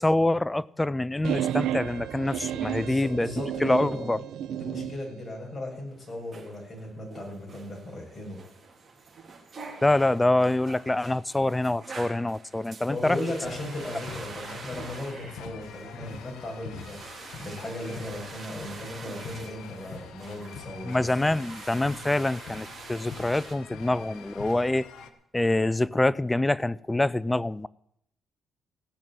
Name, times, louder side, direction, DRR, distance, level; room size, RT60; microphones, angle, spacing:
voice 1, 0.0-3.3 3.6-4.2 9.8-13.2 20.8-24.9 25.3-27.7, left 2 dB, 15° left, 0.5 m, -25 dB
sound 1, 1.2-5.0, right 10 dB, 85° right, 0.7 m, -32 dB
voice 2, 2.8-4.1 4.5-8.4 12.9-21.1, left 1 dB, 30° left, 7.1 m, -37 dB
sound 2, 5.9-23.5, right 4 dB, 35° right, 3.3 m, -46 dB
sound 3, 13.2-25.1, left 6 dB, 85° left, 1.4 m, -45 dB
17.0 x 6.2 x 9.0 m
cardioid pair, 90°, 0 cm